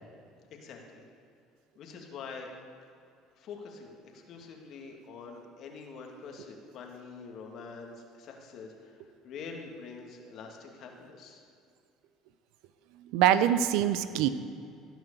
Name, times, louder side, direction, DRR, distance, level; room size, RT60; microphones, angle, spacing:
voice 1, 0.5-1.1 1.8-2.5 3.4-11.4, left 5 dB, 55° left, 1 dB, 2.3 m, -45 dB
voice 2, 13.0-14.3, right 11 dB, 70° right, 13 dB, 0.6 m, -24 dB
17.0 x 6.2 x 6.9 m, 2.5 s
hypercardioid pair, 70°, 0 cm